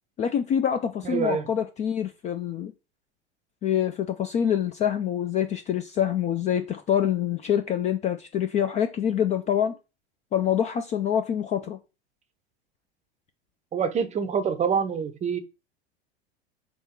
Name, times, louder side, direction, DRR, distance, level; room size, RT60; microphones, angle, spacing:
voice 1, 0.2-2.7 3.6-9.8 10.3-11.8, left 9 dB, 25° left, 0.3 m, -26 dB
voice 2, 1.0-1.4 13.7-15.4, right 6 dB, 20° right, 0.6 m, -26 dB
3.6 x 2.9 x 4.3 m
figure-of-eight pair, 85°, 32 cm